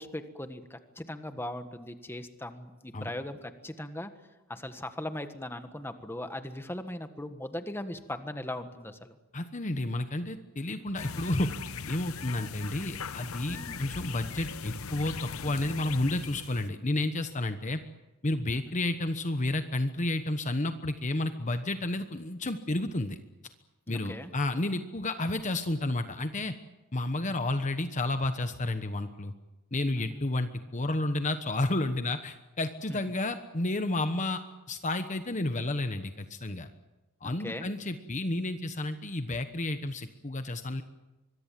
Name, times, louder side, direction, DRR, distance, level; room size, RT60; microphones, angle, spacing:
voice 1, 0.0-4.1 4.5-9.2 13.5-13.9 18.5-18.6 23.9-24.3 30.0-30.2 32.9-33.0 37.2-37.7, left 1 dB, 10° left, 8 dB, 1.6 m, -39 dB
voice 2, 9.3-11.5 11.8-17.8 18.2-23.2 23.9-26.5 26.9-29.3 29.7-34.4 34.7-36.7 37.2-40.8, left 2 dB, 35° left, 8 dB, 1.1 m, -31 dB
sound 1, 11.0-16.7, left 5 dB, 85° left, 0.9 m, -39 dB
25.0 x 22.5 x 7.6 m, 1.0 s
head